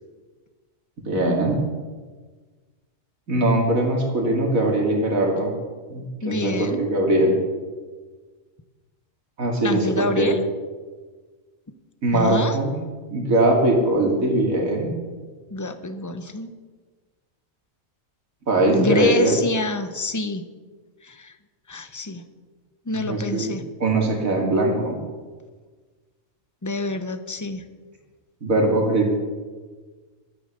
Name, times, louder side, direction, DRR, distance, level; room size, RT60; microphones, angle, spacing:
voice 1, 1.0-1.6 3.3-5.5 5.9-7.4 9.4-10.3 12.0-12.7 13.1-14.9 18.5-19.4 22.9-23.4 23.8-25.0 28.4-29.2, right 1 dB, 85° right, 0 dB, 2.9 m, -21 dB
voice 2, 6.2-6.8 9.6-10.4 12.1-12.6 15.5-16.5 18.7-20.4 21.0-21.3 21.7-22.2 22.9-23.6 26.6-27.6, left 2 dB, 15° left, 9 dB, 0.7 m, -27 dB
13.0 x 10.0 x 6.8 m, 1.4 s
omnidirectional pair, 1.4 m